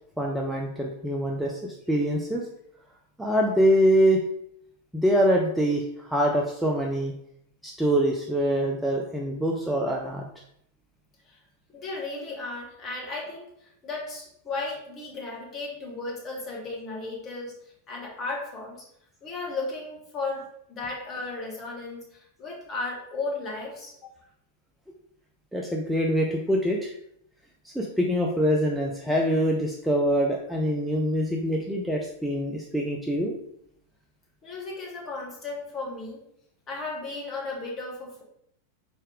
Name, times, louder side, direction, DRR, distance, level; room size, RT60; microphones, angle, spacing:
voice 1, 0.2-2.4 3.2-4.2 4.9-7.1 7.6-10.2 25.5-26.9 27.6-33.3, equal, 5° right, -1 dB, 0.5 m, -24 dB
voice 2, 11.7-17.5 17.9-18.9 19.2-24.1 34.4-36.2 36.7-38.2, left 3 dB, 30° left, -2 dB, 1.5 m, -35 dB
4.2 x 3.4 x 3.6 m, 0.72 s
figure-of-eight pair, 90°, 0 cm